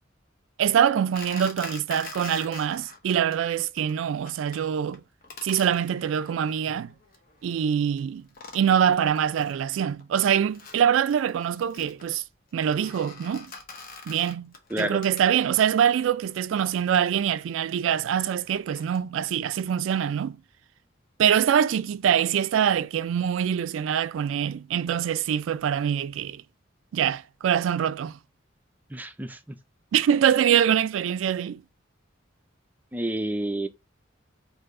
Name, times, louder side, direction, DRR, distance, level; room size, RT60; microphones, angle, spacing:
voice 1, 0.6-5.0 5.4-6.9 7.4-8.2 8.5-12.2 12.5-13.5 14.1-20.4 21.2-26.4 26.9-28.2 29.9-31.6, right 8 dB, 80° right, 0.3 m, -24 dB
sound 1, 1.1-3.3 3.6-3.9 4.2-4.6 4.9-7.6 8.0-8.1 8.3-9.6 10.0-15.6 16.2-19.0, left 4 dB, 50° left, 0.9 m, -45 dB
voice 2, 14.7-15.0 28.9-29.6 32.9-33.7, right 1 dB, 10° right, 0.4 m, -29 dB
4.7 x 2.6 x 2.5 m
head